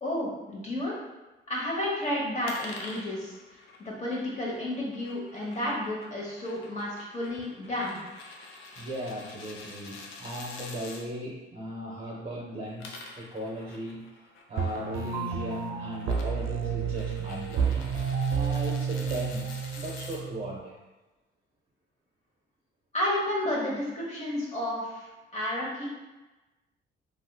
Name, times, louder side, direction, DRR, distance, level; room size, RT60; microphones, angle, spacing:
voice 1, 0.0-0.9 1.5-3.3 3.8-8.0 22.9-25.9, left 1 dB, 35° left, -4 dB, 1.1 m, -31 dB
sound 1, 2.5-11.1 12.6-20.2, left 3 dB, 90° left, 0.5 m, -47 dB
voice 2, 8.8-14.1 14.5-17.9 18.2-20.8, right 1 dB, 35° right, -4 dB, 0.6 m, -37 dB
sound 2, 14.6-20.6, right 6 dB, 85° right, 0.4 m, -30 dB
3.5 x 2.4 x 2.2 m, 1.1 s
cardioid pair, 90°, 20 cm